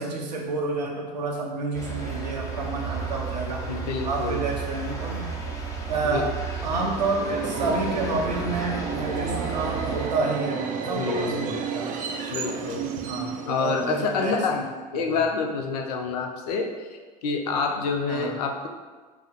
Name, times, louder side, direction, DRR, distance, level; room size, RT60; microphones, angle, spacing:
voice 1, 0.0-3.6 4.0-5.3 5.9-6.3 6.6-11.9 12.4-12.5 13.0-14.6 14.9-15.0 18.1-18.3, right 3 dB, 85° right, -1 dB, 0.6 m, -29 dB
sound 1, 1.7-10.1, right 4 dB, 15° left, 0.6 m, -33 dB
voice 2, 3.7-4.4 6.0-6.3 11.0-11.6 12.3-12.9 13.4-14.6 14.9-18.7, left 4 dB, 70° left, 4 dB, 0.4 m, -28 dB
Subway metro underground, 6.6-14.3, right 6 dB, 40° right, 0.4 m, -32 dB
2.7 x 2.0 x 3.9 m, 1.4 s
figure-of-eight pair, 70°, 21 cm